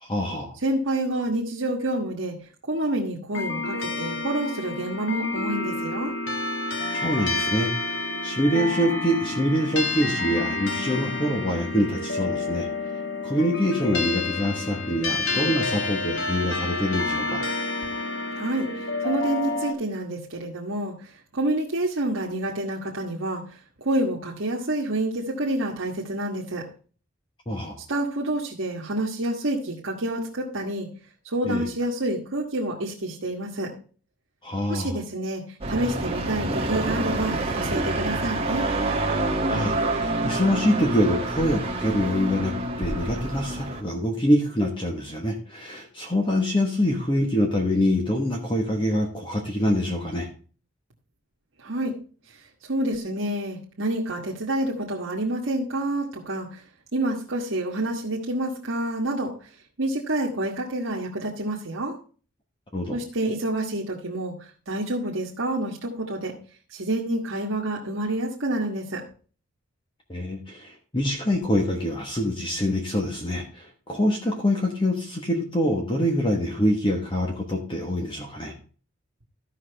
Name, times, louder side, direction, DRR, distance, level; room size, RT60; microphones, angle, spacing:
voice 1, 0.0-0.5 6.9-7.7 8.2-12.7 13.2-17.4 27.5-27.8 31.4-31.7 34.4-35.0 39.5-42.5 42.8-50.3 62.7-63.0 70.1-78.5, equal, 25° left, 2 dB, 1.2 m, -25 dB
voice 2, 0.6-2.3 2.7-6.1 18.3-23.4 23.8-26.7 27.9-30.9 31.2-33.7 34.7-35.4 35.7-38.7 51.6-51.9 52.6-56.6 56.9-59.3 59.8-62.0 62.9-64.3 64.7-66.3 66.7-69.0, right 1 dB, 75° right, -3 dB, 1.5 m, -28 dB
sound 1, 3.3-19.7, left 3 dB, 65° left, 1.5 m, -29 dB
sound 2, 35.6-43.8, right 2 dB, 30° right, 1.2 m, -27 dB
14.0 x 5.9 x 3.3 m, 0.39 s
head